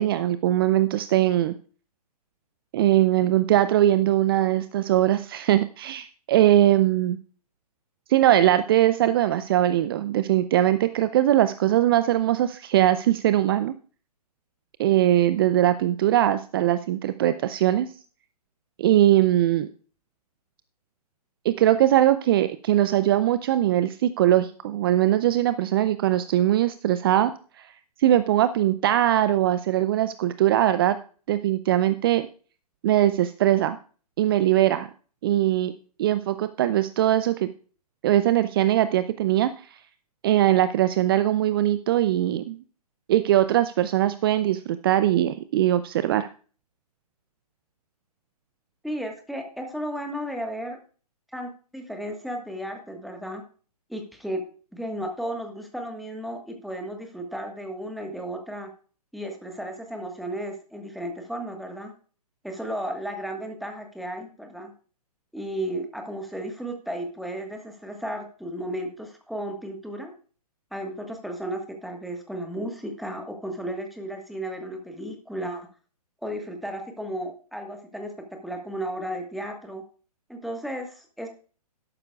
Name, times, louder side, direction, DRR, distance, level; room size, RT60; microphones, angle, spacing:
voice 1, 0.0-1.5 2.7-7.2 8.1-13.7 14.8-17.9 18.8-19.7 21.4-27.3 27.6-27.7 28.0-31.0 31.3-32.3 32.8-33.8 34.2-34.9 35.2-35.7 36.0-37.5 38.0-39.5 40.2-42.6 43.1-46.3, right 13 dB, 35° right, 13 dB, 0.5 m, -21 dB
voice 2, 48.8-50.8 51.3-53.4 53.9-54.4 54.7-58.7 59.1-61.9 62.4-64.7 65.3-70.1 70.7-75.7 76.2-79.8 80.3-81.3, right 1 dB, ahead, 4 dB, 1.5 m, -34 dB
12.5 x 11.5 x 2.4 m, 0.40 s
figure-of-eight pair, 125°, 20 cm